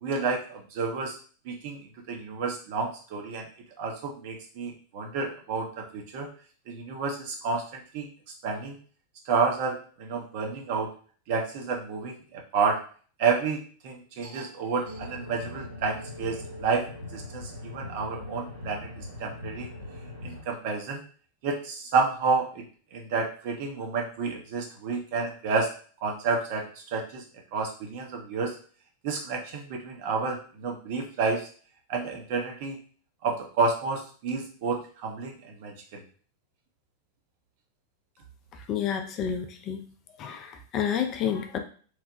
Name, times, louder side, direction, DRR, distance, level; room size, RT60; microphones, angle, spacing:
voice 1, 0.0-1.2 1.5-1.8 2.1-3.5 3.8-6.3 6.7-8.1 8.4-8.8 9.3-10.9 11.3-12.8 13.2-16.9 17.1-19.7 20.2-21.0 21.4-22.7 22.9-25.7 26.0-26.6 26.9-27.2 27.5-28.5 29.0-31.4 31.9-32.8 33.2-36.0, right 4 dB, 50° right, 2 dB, 0.6 m, -30 dB
sound 1, 14.8-20.4, left 2 dB, 85° right, 0.8 m, -41 dB
voice 2, 38.5-39.9 40.1-41.6, left 8 dB, 35° left, 6 dB, 0.3 m, -30 dB
3.0 x 2.0 x 2.5 m, 0.42 s
figure-of-eight pair, 90°, 0 cm